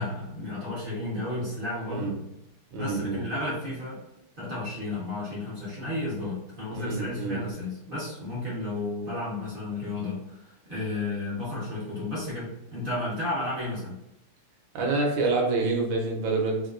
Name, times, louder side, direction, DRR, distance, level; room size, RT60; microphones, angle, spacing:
voice 1, 0.0-2.2 2.8-4.0 4.4-14.0, left 2 dB, 55° right, -7 dB, 0.5 m, -33 dB
voice 2, 2.7-3.3 6.7-7.4 14.7-16.6, right 3 dB, 75° right, -1 dB, 1.5 m, -27 dB
3.6 x 2.2 x 2.4 m, 0.87 s
omnidirectional pair, 2.3 m